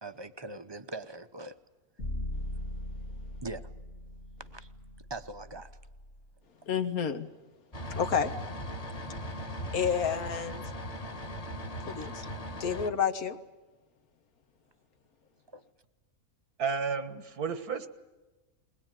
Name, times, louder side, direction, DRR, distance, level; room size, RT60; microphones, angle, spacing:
voice 1, 0.0-1.6 3.4-3.7 4.5-4.7 5.1-5.7 15.5-15.6, right 2 dB, 25° right, 11 dB, 0.7 m, -41 dB
sound 1, 2.0-6.2, left 1 dB, 50° left, 2.5 m, -40 dB
voice 2, 6.7-7.3 7.9-8.3 9.7-10.7 11.9-12.3 12.6-13.4, left 7 dB, 75° left, 9 dB, 1.7 m, -30 dB
sound 2, 7.7-12.9, equal, 25° left, 1.4 m, -39 dB
voice 3, 16.6-17.9, right 5 dB, 90° right, 10 dB, 2.0 m, -32 dB
21.0 x 20.5 x 9.2 m, 1.2 s
omnidirectional pair, 1.6 m